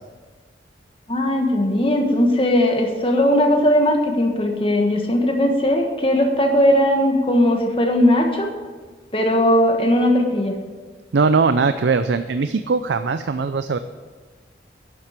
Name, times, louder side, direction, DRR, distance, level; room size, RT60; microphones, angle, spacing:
voice 1, 1.1-8.5 9.1-10.6, left 1 dB, 30° left, 3 dB, 1.4 m, -18 dB
voice 2, 11.1-13.8, right 4 dB, 80° right, 10 dB, 0.5 m, -20 dB
11.0 x 7.6 x 8.2 m, 1.4 s
head